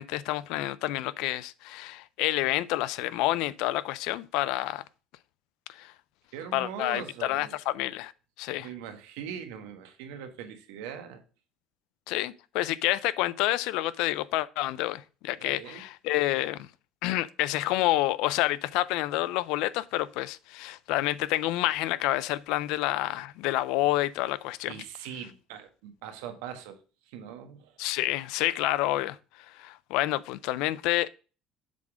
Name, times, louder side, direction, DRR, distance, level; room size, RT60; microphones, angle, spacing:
voice 1, 0.0-4.8 5.7-5.9 6.5-8.1 8.4-8.7 12.1-16.7 17.0-24.7 27.8-31.1, left 16 dB, 75° left, 0.4 m, -28 dB
voice 2, 6.3-7.5 8.6-11.2 15.4-15.8 24.6-27.9, right 8 dB, 85° right, 1.3 m, -41 dB
7.5 x 3.7 x 4.9 m
cardioid pair, 115°, 0 cm